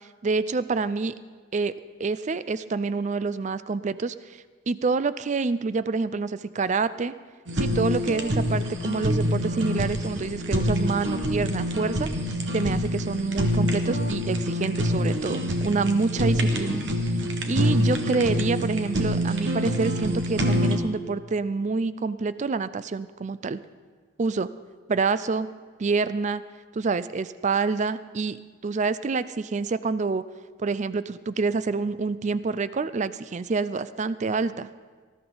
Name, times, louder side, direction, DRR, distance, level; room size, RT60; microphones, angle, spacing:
voice 1, 0.2-1.1 1.5-4.1 4.7-7.1 7.6-12.1 12.5-16.8 17.5-23.6 24.2-24.5 24.9-25.5 25.8-26.4 26.7-28.4 28.6-30.2 30.6-34.7, right 4 dB, 40° right, 15 dB, 0.4 m, -27 dB
Fire, 7.5-20.8, equal, 70° right, 1.3 m, -26 dB
19.5 x 13.0 x 3.9 m, 1.5 s
head